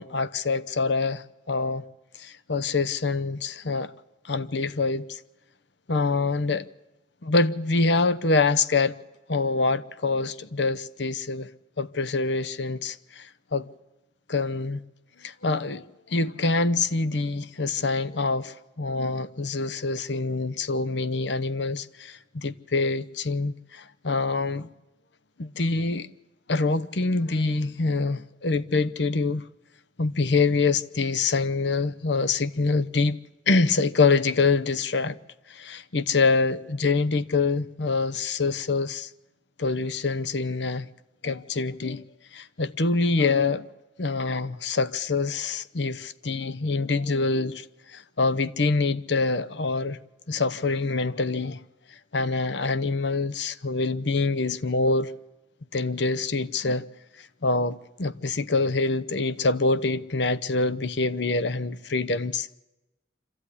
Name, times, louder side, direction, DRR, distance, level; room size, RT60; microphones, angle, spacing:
voice 1, 0.0-1.8 2.2-3.9 4.2-5.2 5.9-6.7 7.2-9.0 9.3-11.5 11.8-13.7 14.3-14.8 15.2-24.7 25.4-26.1 26.5-29.4 30.0-33.2 33.5-35.2 35.5-39.1 39.6-40.9 41.2-42.0 42.3-43.7 44.0-50.0 50.3-51.6 52.1-55.1 55.7-56.9 57.2-62.5, left 3 dB, 70° left, 0.9 m, -25 dB
26.0 x 14.5 x 9.8 m
head